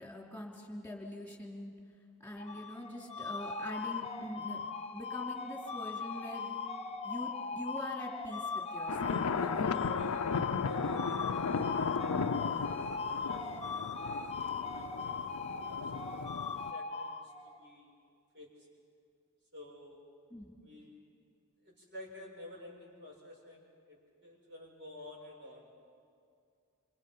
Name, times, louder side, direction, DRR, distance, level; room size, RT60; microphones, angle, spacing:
voice 1, 0.0-1.8 2.2-4.7 4.9-6.6 7.0-10.1 20.3-20.6, left 1 dB, 10° left, -1 dB, 3.3 m, -44 dB
sound 1, 2.4-17.6, left 4 dB, 30° left, 1.0 m, -39 dB
sound 2, 8.9-16.7, left 5 dB, 85° left, 0.5 m, -35 dB
voice 2, 9.1-16.1 16.7-18.1 18.3-18.5 19.5-20.0 20.6-21.0 21.6-25.7, left 1 dB, 55° right, -2 dB, 7.4 m, -51 dB
27.5 x 25.5 x 5.6 m, 2.3 s
head